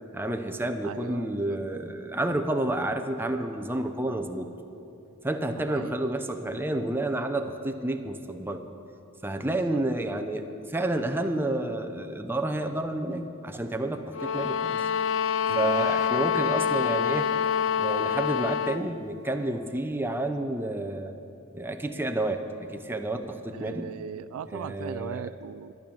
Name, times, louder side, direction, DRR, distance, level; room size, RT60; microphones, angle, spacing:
voice 1, 0.1-4.5 5.2-8.6 9.2-14.8 15.5-17.3 17.8-21.1 21.5-23.9 24.5-25.4, right 1 dB, 10° right, 6 dB, 0.6 m, -30 dB
voice 2, 0.8-1.6 5.5-5.9 9.4-9.8 15.5-15.9 16.2-16.3 23.5-25.7, right 8 dB, 75° right, 16 dB, 0.3 m, -39 dB
sound 1, 14.1-18.9, left 7 dB, 65° left, 0.4 m, -26 dB
12.0 x 10.5 x 7.1 m, 2.8 s
head